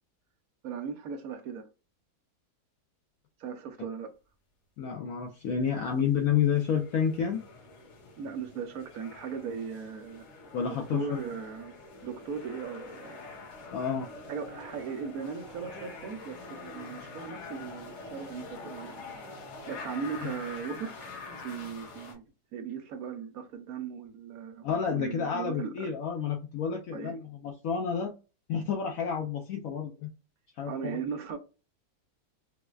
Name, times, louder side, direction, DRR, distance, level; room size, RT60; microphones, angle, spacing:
voice 1, 0.6-1.7 3.4-4.1 8.2-10.3 10.6-11.7 12.0-13.2 14.3-18.9 19.7-20.9 21.3-22.2 22.5-25.9 26.9-27.2 30.7-31.4, right 6 dB, 70° right, 1.0 m, -38 dB
voice 2, 4.8-7.4 10.5-11.2 13.7-14.1 20.2-20.3 24.6-28.1 28.5-30.1 30.6-31.0, left 7 dB, 70° left, 0.9 m, -30 dB
sound 1, 6.0-22.2, left 3 dB, 85° left, 1.7 m, -45 dB
4.7 x 2.1 x 2.2 m
omnidirectional pair, 1.7 m